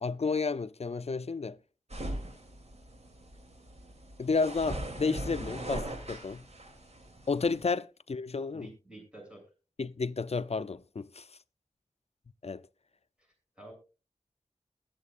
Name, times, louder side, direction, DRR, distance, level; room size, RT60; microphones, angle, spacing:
voice 1, 0.0-1.6 4.2-6.4 7.3-8.7 9.8-11.2 12.4-12.6, left 4 dB, 60° left, 0.5 m, -31 dB
sound 1, 1.9-7.6, right 1 dB, 60° right, 2.9 m, -40 dB
voice 2, 8.5-9.4 13.2-13.7, right 2 dB, 10° right, 7.1 m, -50 dB
20.5 x 7.6 x 2.5 m
wide cardioid pair, 60°, 12 cm